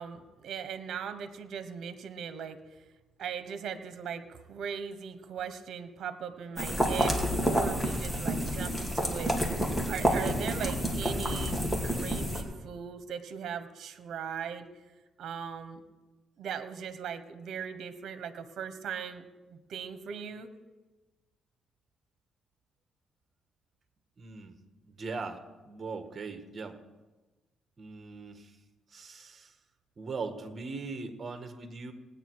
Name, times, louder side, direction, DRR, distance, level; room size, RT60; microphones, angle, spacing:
voice 1, 0.0-2.6 3.2-9.6 9.9-14.7 15.2-15.8 16.4-19.2 19.5-20.5, right 7 dB, 70° right, 10 dB, 1.1 m, -39 dB
sound 1, 6.6-12.4, equal, 10° left, 2.3 m, -29 dB
voice 2, 24.2-24.5 24.9-26.8 27.8-28.5 28.9-29.5 30.0-31.9, right 4 dB, 40° right, 7 dB, 1.6 m, -40 dB
18.0 x 9.1 x 4.8 m, 1.2 s
cardioid pair, 90°, 0 cm